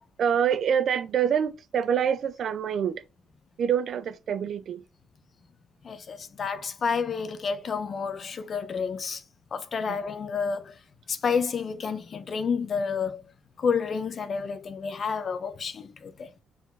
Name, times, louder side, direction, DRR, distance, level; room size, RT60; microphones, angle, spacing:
voice 1, 0.2-3.0 3.6-4.8 9.9-10.0, right 8 dB, 60° right, 0.7 m, -26 dB
voice 2, 5.8-9.2 9.5-10.8 11.1-13.2 13.6-16.3, left 5 dB, 50° left, 0.9 m, -30 dB
7.2 x 4.3 x 4.0 m
cardioid pair, 90°, 0 cm